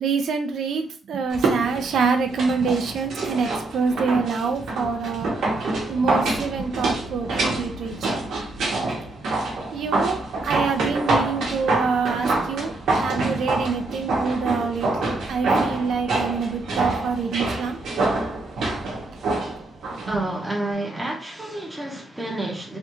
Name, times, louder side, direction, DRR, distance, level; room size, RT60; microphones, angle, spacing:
voice 1, 0.0-5.4 5.9-8.2 9.7-17.8 20.1-20.2, right 5 dB, 70° right, 0.5 m, -26 dB
sound 1, 1.3-20.1 20.4-20.5, right 2 dB, 90° right, 1.0 m, -26 dB
voice 2, 20.1-22.8, right 1 dB, 10° right, 0.6 m, -29 dB
3.3 x 2.3 x 3.0 m
wide cardioid pair, 165°, 0 cm